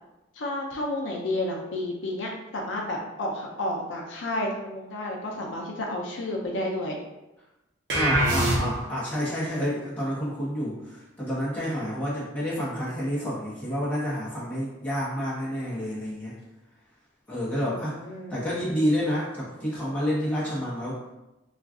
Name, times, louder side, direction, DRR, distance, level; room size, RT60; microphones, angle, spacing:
voice 1, 0.4-7.0 17.6-18.4, left 1 dB, 70° left, 0 dB, 0.5 m, -31 dB
voice 2, 7.9-16.3 17.3-18.0 18.3-21.0, equal, 10° left, -8 dB, 0.8 m, -29 dB
sound 1, 7.9-9.1, right 1 dB, 60° right, 0.7 m, -24 dB
2.4 x 2.3 x 3.5 m, 0.96 s
head